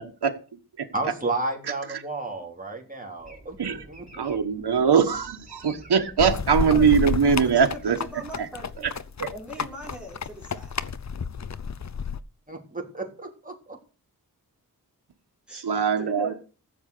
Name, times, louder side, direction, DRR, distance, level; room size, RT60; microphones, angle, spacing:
voice 1, 0.9-4.3 12.5-13.8, right 2 dB, 20° right, 1 dB, 3.4 m, -32 dB
sound 1, 3.2-8.6, right 1 dB, 20° left, 4.6 m, -51 dB
voice 2, 4.1-8.0 8.4-8.5 9.2-9.3 15.5-16.3, right 6 dB, 85° right, 4 dB, 1.4 m, -22 dB
sound 2, 6.2-12.2, left 6 dB, 45° left, 0.7 m, -31 dB
voice 3, 6.5-6.8 7.3-8.9 9.3-10.9 15.5-16.4, equal, 5° right, -2 dB, 4.4 m, -40 dB
15.0 x 7.2 x 6.7 m, 0.36 s
wide cardioid pair, 85°, 39 cm